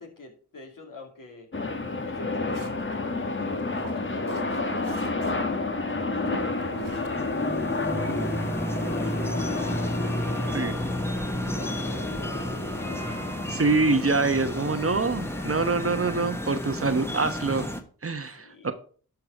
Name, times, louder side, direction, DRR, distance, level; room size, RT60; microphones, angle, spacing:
voice 1, 0.0-1.5 2.0-5.2 5.6-6.8 7.4-8.3 8.6-11.3 11.6-13.0 18.4-18.7, left 3 dB, 60° left, 2 dB, 2.8 m, -46 dB
sound 1, 1.5-15.8, left 3 dB, 35° left, 1.4 m, -31 dB
Walk footsteps, 2.5-2.9 3.6-5.5 5.9-6.0 6.2-7.1 7.4-7.5 8.1-8.2, right 4 dB, 65° right, 1.6 m, -41 dB
sound 2, 6.2-17.8, equal, 5° left, 1.4 m, -32 dB
voice 2, 13.5-17.7 18.0-18.7, right 3 dB, 40° right, 9 dB, 1.1 m, -25 dB
11.5 x 4.8 x 4.8 m, 0.43 s
cardioid pair, 40°, 36 cm